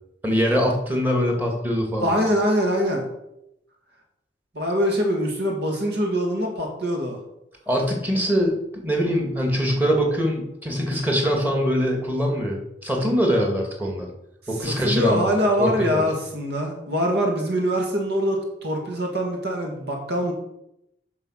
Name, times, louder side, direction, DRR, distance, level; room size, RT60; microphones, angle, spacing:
voice 1, 0.2-2.1 7.7-14.1 14.5-15.3 15.6-16.1, equal, 10° right, 1 dB, 2.2 m, -23 dB
voice 2, 2.0-3.0 4.5-7.2 14.6-20.3, equal, 65° right, 1 dB, 2.2 m, -23 dB
9.7 x 5.8 x 6.4 m, 0.83 s
head